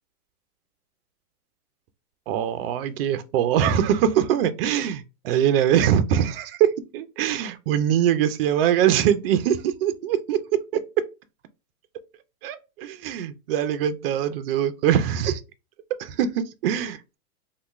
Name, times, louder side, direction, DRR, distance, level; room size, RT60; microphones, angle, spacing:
voice 1, 2.3-10.4 10.7-11.1 12.4-15.4 16.0-17.0, right 9 dB, 40° right, 0.5 m, -23 dB
3.3 x 2.3 x 3.1 m
hypercardioid pair, 135°, 45 cm